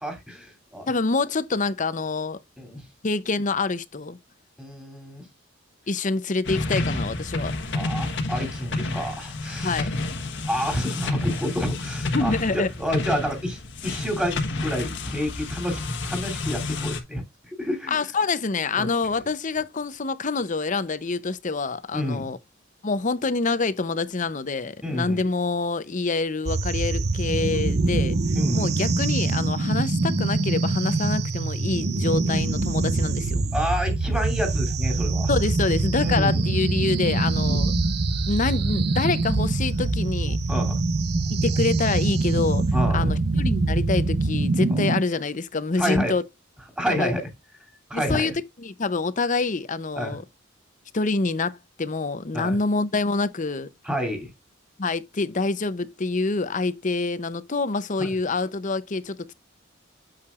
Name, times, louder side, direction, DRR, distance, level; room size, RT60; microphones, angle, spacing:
voice 1, 0.0-0.9 2.6-2.8 4.6-5.2 7.7-9.9 10.5-18.0 18.7-18.9 21.9-22.3 24.8-25.2 28.3-28.7 33.5-35.3 36.0-36.4 37.4-37.6 40.5-40.8 42.7-43.1 44.7-44.8 45.8-46.1 46.8-47.3 47.9-48.3 49.9-50.2 52.3-52.6 53.8-54.3 58.0-58.1, equal, 5° right, 2.9 m, -29 dB
voice 2, 0.9-2.4 3.0-4.2 5.9-7.5 9.6-9.9 12.1-12.7 17.9-22.4 22.8-28.2 28.5-33.4 35.3-37.7 38.3-40.4 41.3-42.7 42.9-46.2 46.9-47.1 47.9-50.2 50.9-53.7 54.8-59.3, left 3 dB, 40° left, 0.7 m, -26 dB
sound 1, 6.4-17.0, left 2 dB, 60° left, 1.4 m, -30 dB
sound 2, 26.5-45.0, right 3 dB, 55° right, 0.8 m, -24 dB
8.6 x 6.6 x 2.4 m
head